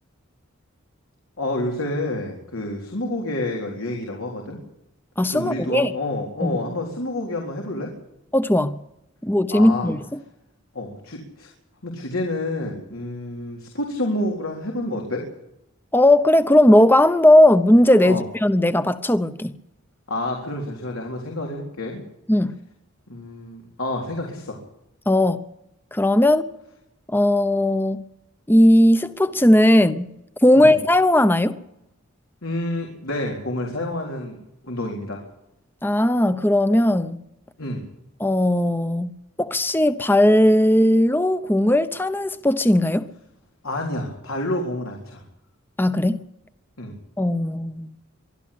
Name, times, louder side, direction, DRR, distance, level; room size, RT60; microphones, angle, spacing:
voice 1, 1.4-4.6 5.3-7.9 9.5-9.9 10.7-11.5 11.8-15.2 18.0-18.2 20.1-22.0 23.1-24.6 30.5-30.7 32.4-34.4 34.6-35.2 37.6-37.8 43.6-45.2 46.8-46.9, left 1 dB, 90° left, 3.9 m, -28 dB
voice 2, 5.2-5.9 6.4-6.6 8.3-8.8 9.2-10.0 15.9-19.5 22.3-22.6 25.1-25.4 25.9-26.5 27.1-28.0 28.5-30.1 30.4-31.6 35.8-37.2 38.2-43.1 45.8-46.2 47.2-47.9, left 1 dB, 10° left, 0.8 m, -17 dB
24.0 x 13.0 x 8.5 m
head